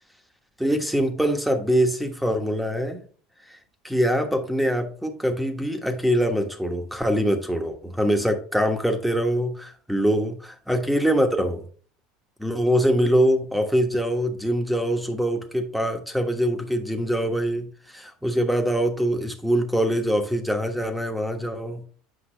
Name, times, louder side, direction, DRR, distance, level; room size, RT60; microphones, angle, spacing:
voice 1, 0.6-3.0 3.8-11.6 12.4-21.9, equal, 5° right, 1.3 m, -23 dB
8.3 x 5.4 x 3.3 m
supercardioid pair, 110°, 0 cm